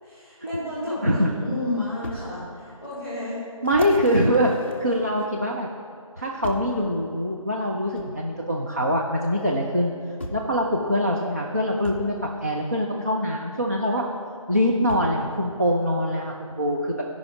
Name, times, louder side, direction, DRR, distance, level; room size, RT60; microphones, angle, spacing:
voice 1, 0.0-3.4, left 1 dB, 5° right, -10 dB, 1.8 m, -31 dB
sound 1, 2.0-2.2 2.8-2.9 3.6-5.5 6.4-6.8 7.9-8.1 9.4-9.5 10.2-10.5 11.8-12.1 13.7-13.8 14.9-15.2 16.0-16.1, left 1 dB, 20° left, 0.6 m, -36 dB
voice 2, 3.6-4.5 4.8-5.7 6.2-9.9 10.3-12.1 12.4-14.0 14.5-17.0, equal, 25° right, -1 dB, 0.4 m, -23 dB
12.0 x 5.3 x 4.9 m, 2.4 s
figure-of-eight pair, 165°, 18 cm